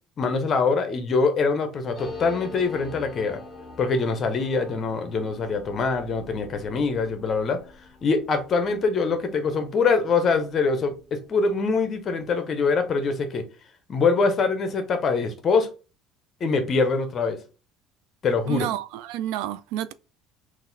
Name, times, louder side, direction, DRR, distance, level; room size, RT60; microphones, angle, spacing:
voice 1, 0.2-3.4 3.8-7.6 8.0-13.5 13.9-15.7 16.4-17.4 18.2-18.7, left 4 dB, 30° left, 0.6 m, -24 dB
sound 1, 1.9-11.1 11.4-11.5 11.7-12.3, left 3 dB, 15° left, 1.2 m, -44 dB
voice 2, 18.5-19.9, right 12 dB, 85° right, 0.3 m, -30 dB
3.9 x 2.5 x 3.9 m
cardioid pair, 170°, 0 cm